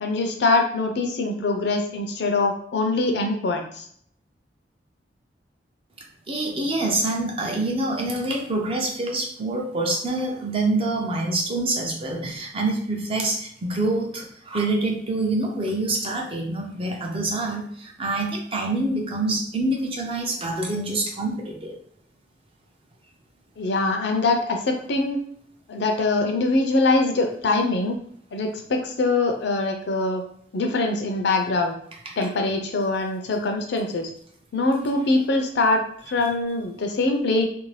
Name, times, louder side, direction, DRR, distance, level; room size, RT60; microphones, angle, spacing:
voice 1, 0.0-3.9 23.6-25.2 25.7-28.0 28.3-30.2 30.5-31.7 32.2-34.1 34.5-37.5, left 2 dB, 70° left, 4 dB, 0.5 m, -23 dB
voice 2, 6.3-21.8 32.1-32.2, right 2 dB, 30° right, 0 dB, 0.5 m, -26 dB
2.6 x 2.0 x 3.1 m, 0.64 s
head